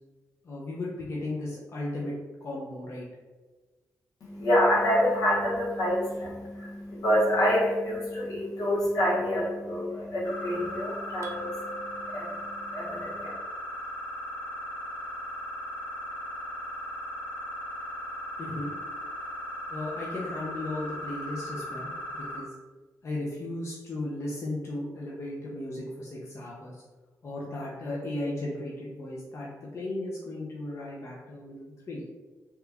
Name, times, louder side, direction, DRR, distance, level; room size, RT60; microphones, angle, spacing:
voice 1, 0.4-2.1 2.4-3.0 18.4-18.7 19.7-22.5 23.0-26.8 27.2-32.0, left 2 dB, 50° left, -5 dB, 0.6 m, -35 dB
voice 2, 4.2-13.3, equal, 80° left, -5 dB, 0.9 m, -27 dB
sound 1, 10.2-22.4, equal, 30° left, 1.1 m, -37 dB
sound 2, 11.2-12.7, right 1 dB, 55° right, 0.4 m, -42 dB
2.9 x 2.2 x 3.4 m, 1.3 s
wide cardioid pair, 110°, 6 cm